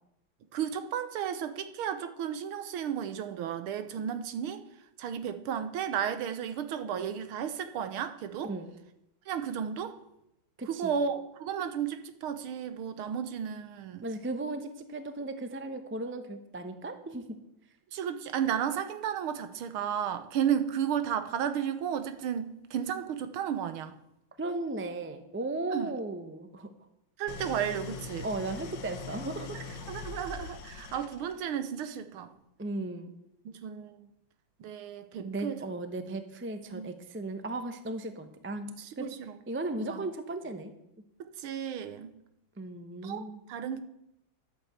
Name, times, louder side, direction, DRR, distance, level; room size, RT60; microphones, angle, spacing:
voice 1, 0.5-4.6 5.0-8.5 9.3-10.0 10.7-14.1 17.9-24.0 25.7-25.9 27.2-28.3 29.5-32.3 33.5-34.1 34.6-35.6 36.7-36.9 38.8-39.4 39.8-40.1 41.4-42.1 43.0-43.8, right 8 dB, 90° right, 10 dB, 1.8 m, -33 dB
voice 2, 10.6-10.9 14.0-17.2 24.4-26.7 28.2-29.6 32.6-33.1 35.2-39.1 39.5-40.7 42.6-43.4, right 2 dB, 20° right, 8 dB, 0.3 m, -36 dB
Idling, 27.3-31.5, left 5 dB, 60° left, 1.6 m, -42 dB
11.5 x 8.9 x 8.0 m, 0.84 s
omnidirectional pair, 2.3 m